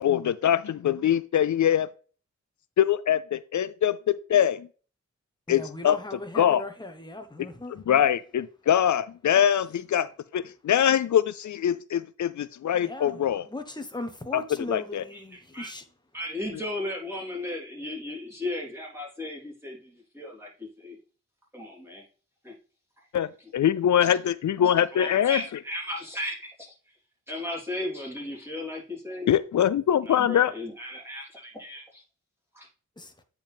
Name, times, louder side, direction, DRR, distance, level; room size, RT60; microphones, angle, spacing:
voice 1, 0.0-1.9 2.8-4.7 5.5-6.6 7.4-13.5 14.3-15.1 23.1-25.4 29.3-30.5, left 10 dB, 75° left, 0.4 m, -23 dB
voice 2, 5.5-7.7 12.9-13.2 13.5-15.8 33.0-33.1, left 2 dB, 15° left, 1.2 m, -38 dB
voice 3, 15.1-15.7 16.1-21.0 21.5-22.0 22.4-22.5 24.9-26.7 27.3-29.3 30.0-32.0 32.5-32.7, left 1 dB, 10° right, 3.7 m, -36 dB
8.7 x 4.8 x 3.5 m
wide cardioid pair, 75°, 29 cm